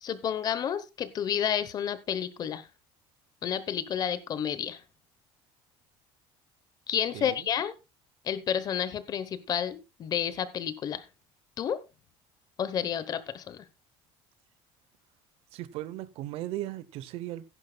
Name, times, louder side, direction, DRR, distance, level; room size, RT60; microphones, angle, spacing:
voice 1, 0.0-2.7 3.4-4.8 6.9-7.7 8.2-11.0 11.6-11.8 12.6-13.6, left 9 dB, 35° left, 1.0 m, -30 dB
voice 2, 15.5-17.4, right 14 dB, 60° right, 0.8 m, -37 dB
15.0 x 11.0 x 2.3 m
cardioid pair, 155°, 11 cm